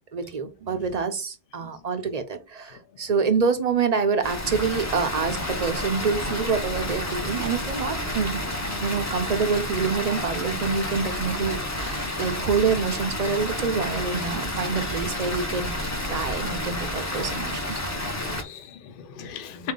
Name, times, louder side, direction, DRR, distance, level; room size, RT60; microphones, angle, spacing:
voice 1, 0.1-8.4 8.8-15.8 16.0-17.9, right 5 dB, 50° right, 0.5 m, -26 dB
Water, 4.2-18.4, left 1 dB, 20° left, 0.6 m, -30 dB
voice 2, 18.0-19.7, left 8 dB, 60° left, 0.8 m, -38 dB
4.0 x 2.7 x 3.6 m
omnidirectional pair, 1.1 m